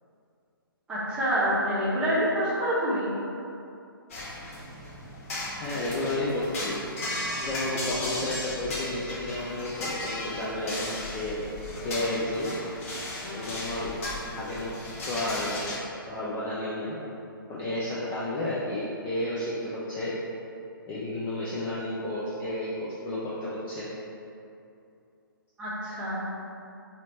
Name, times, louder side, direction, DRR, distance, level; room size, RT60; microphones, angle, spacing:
voice 1, 0.9-3.1 13.2-13.6 25.6-26.2, equal, 10° right, -11 dB, 0.9 m, -27 dB
sound 1, 4.1-15.8, left 1 dB, 35° left, 0.7 m, -35 dB
voice 2, 5.6-6.8 7.4-11.4 11.8-12.5 13.3-14.0 14.4-14.7 15.0-17.0 17.5-20.1 20.9-23.9, left 1 dB, 15° left, -8 dB, 0.4 m, -32 dB
4.0 x 2.7 x 3.1 m, 2.6 s
figure-of-eight pair, 130°, 12 cm